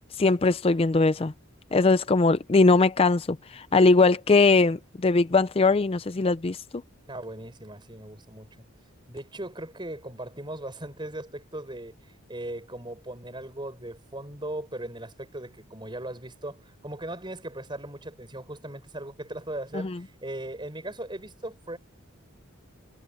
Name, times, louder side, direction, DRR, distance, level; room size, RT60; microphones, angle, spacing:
voice 1, 0.2-1.3 1.7-6.6 19.7-20.0, left 3 dB, 25° left, 0.4 m, -21 dB
voice 2, 7.1-8.5 9.1-11.9 12.3-21.8, right 1 dB, 20° right, 5.7 m, -38 dB
head